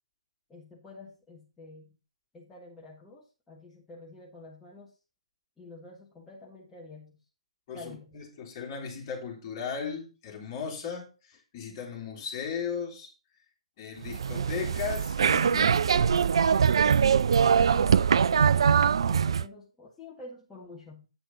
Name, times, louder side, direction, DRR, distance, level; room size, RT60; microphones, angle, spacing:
voice 1, 0.5-2.0 2.3-5.0 5.6-7.2 7.7-8.1 17.5-21.1, left 2 dB, 10° left, 1.6 m, -49 dB
voice 2, 7.7-13.1 13.8-17.3, left 6 dB, 30° left, 2.8 m, -37 dB
sound 1, 14.0-19.5, right 7 dB, 55° right, 0.3 m, -22 dB
8.9 x 4.9 x 5.4 m
figure-of-eight pair, 130°, 3 cm